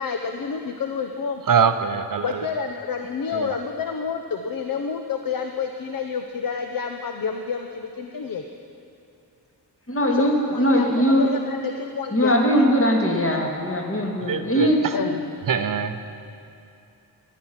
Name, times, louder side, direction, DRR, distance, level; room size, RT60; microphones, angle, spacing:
voice 1, 0.0-1.4 2.2-8.4 10.1-12.4 14.9-15.2, left 6 dB, 55° left, 5 dB, 0.7 m, -29 dB
voice 2, 1.5-2.4 3.3-3.5 14.2-14.9 15.5-16.0, right 6 dB, 55° right, 9 dB, 0.7 m, -23 dB
voice 3, 9.9-11.3 12.1-14.8 15.1-15.2, equal, 35° left, -1 dB, 1.8 m, -20 dB
14.5 x 11.0 x 5.8 m, 2.6 s
wide cardioid pair, 130°, 40 cm